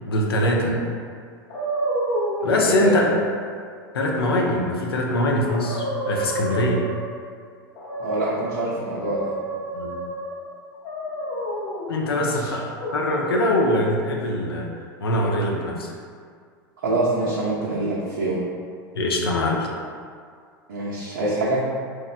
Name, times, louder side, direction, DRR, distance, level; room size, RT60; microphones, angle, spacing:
voice 1, 0.1-0.8 2.4-3.1 3.9-6.9 9.7-10.0 11.9-12.6 12.9-14.7 15.0-15.9 18.9-19.7, left 1 dB, 85° left, 0 dB, 0.4 m, -22 dB
sound 1, 1.5-2.6 5.1-5.2 5.5-7.2 7.8-8.6 9.0-10.3 10.8-11.9 12.8-13.3, right 1 dB, 50° left, 0.7 m, -29 dB
voice 2, 2.4-3.1 8.0-9.3 12.1-12.6 16.8-18.4 20.7-21.6, right 2 dB, 85° right, -8 dB, 0.5 m, -25 dB
3.0 x 2.1 x 2.4 m, 2.1 s
hypercardioid pair, 95°, 12 cm